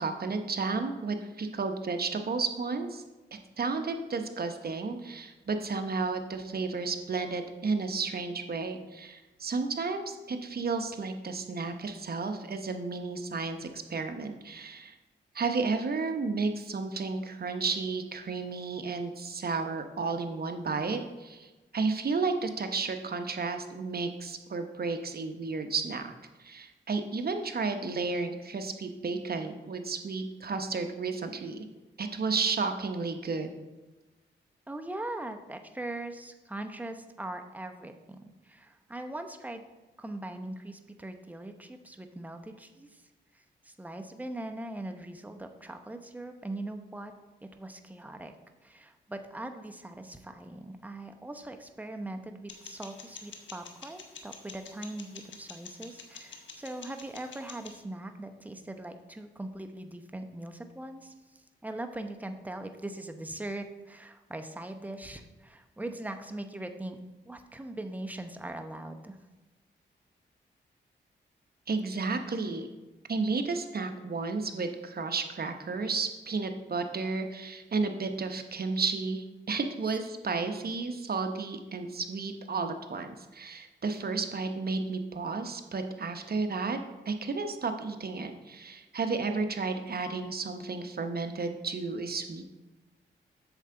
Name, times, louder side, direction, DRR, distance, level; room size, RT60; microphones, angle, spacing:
voice 1, 0.0-3.0 3.6-15.0 15.3-26.1 26.4-31.6 32.0-33.5 71.7-72.7 73.1-86.8 87.1-92.5, right 4 dB, 55° right, 7 dB, 0.9 m, -32 dB
voice 2, 34.7-39.6 40.0-43.1 43.3-47.1 47.4-48.3 48.6-67.0 67.2-69.2, right 1 dB, 10° right, 5 dB, 0.8 m, -41 dB
sound 1, 52.5-57.8, left 5 dB, 75° left, 1.1 m, -48 dB
8.1 x 6.8 x 3.8 m, 1.1 s
cardioid pair, 60°, 19 cm